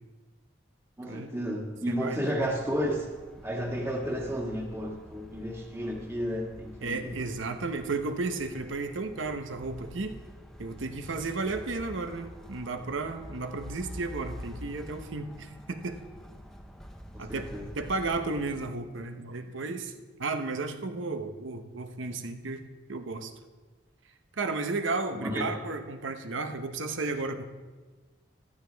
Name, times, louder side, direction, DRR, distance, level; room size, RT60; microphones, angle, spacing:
voice 1, 1.0-3.1 3.4-7.1 17.1-17.6 25.1-25.5, equal, 15° right, 0 dB, 1.6 m, -32 dB
voice 2, 1.9-2.2 2.4-2.6 6.8-10.2 10.6-16.0 17.2-17.5 17.7-19.9 20.2-22.6 22.9-23.3 24.3-27.4, right 3 dB, 85° right, 7 dB, 0.9 m, -33 dB
sound 1, 2.4-18.7, equal, 5° left, 0.7 m, -47 dB
14.5 x 12.5 x 3.4 m, 1.3 s
head